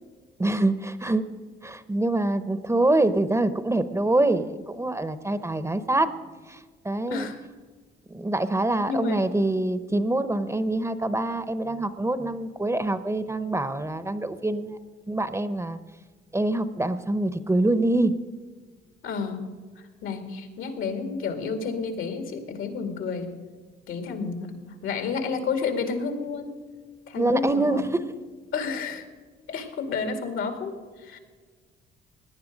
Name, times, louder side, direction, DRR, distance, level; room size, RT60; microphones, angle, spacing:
voice 1, 0.4-1.3 1.6-6.1 6.5-7.3 8.1-14.8 15.1-15.8 16.3-18.1 27.2-28.0, right 2 dB, 15° right, 13 dB, 0.8 m, -25 dB
voice 2, 7.1-7.4 8.8-9.3 19.0-19.5 19.8-23.3 23.9-26.6 27.1-27.8 28.5-29.1 29.5-31.2, left 5 dB, 80° left, 6 dB, 2.2 m, -31 dB
17.0 x 10.5 x 5.2 m, 1.5 s
cardioid pair, 90°, 20 cm